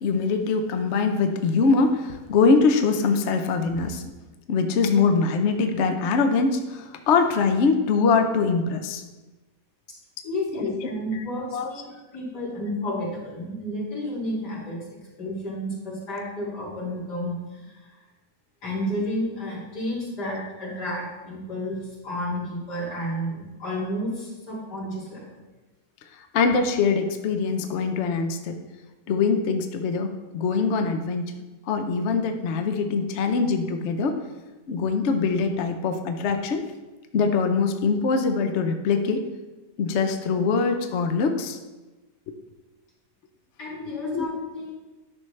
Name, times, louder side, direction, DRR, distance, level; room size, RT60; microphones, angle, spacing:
voice 1, 0.0-4.1 4.5-9.0 10.5-10.9 11.5-11.7 26.1-28.6 29.1-34.2 34.7-36.6 37.1-39.3 39.8-41.6 44.1-44.2, left 4 dB, 60° left, 6 dB, 0.8 m, -23 dB
voice 2, 10.2-14.9 15.2-17.9 18.6-25.2 43.6-44.7, equal, 80° left, -6 dB, 3.1 m, -31 dB
11.0 x 6.0 x 3.2 m, 1.2 s
omnidirectional pair, 1.8 m